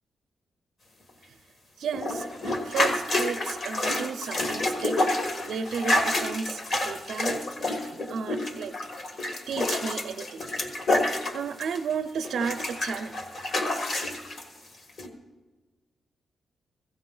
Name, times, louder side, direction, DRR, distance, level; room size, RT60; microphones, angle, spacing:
voice 1, 1.8-7.4 8.1-8.7 9.5-10.5 11.3-13.1, right 6 dB, 80° right, 8 dB, 0.5 m, -33 dB
sound 1, 1.9-11.9 12.2-14.4 15.0-15.1, left 2 dB, 55° left, 1.5 m, -28 dB
16.0 x 15.5 x 3.8 m, 1.3 s
wide cardioid pair, 125°, 0 cm